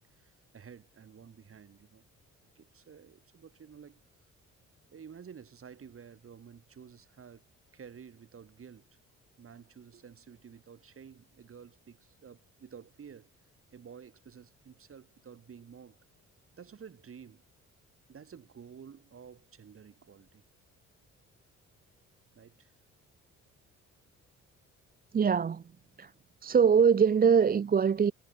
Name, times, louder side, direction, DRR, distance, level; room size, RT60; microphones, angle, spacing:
voice 1, 0.0-2.0 2.5-4.0 4.9-7.4 7.7-8.9 9.4-13.3 13.7-16.0 16.5-17.4 18.1-20.4 22.3-22.7, right 7 dB, 45° right, 4.8 m, -51 dB
voice 2, 25.1-25.6 26.0-26.1 26.4-28.1, right 6 dB, 30° right, 0.7 m, -23 dB
cardioid pair, 90°, 30 cm